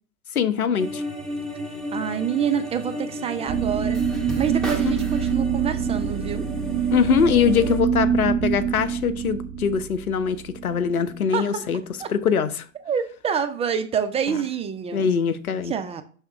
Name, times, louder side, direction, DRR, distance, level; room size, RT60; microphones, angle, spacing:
voice 1, 0.3-1.0 4.9-5.0 6.9-11.8 12.1-12.6 14.9-15.7, left 6 dB, 90° left, 0.7 m, -22 dB
sound 1, 0.8-7.8, equal, ahead, 1.5 m, -32 dB
voice 2, 1.9-4.0 4.4-6.5 11.3-11.6 12.0-12.1 12.8-15.1 15.7-16.0, right 8 dB, 15° right, 0.3 m, -27 dB
sound 2, 3.5-11.4, right 7 dB, 35° right, 2.0 m, -26 dB
5.6 x 3.5 x 5.1 m
figure-of-eight pair, 85°, 42 cm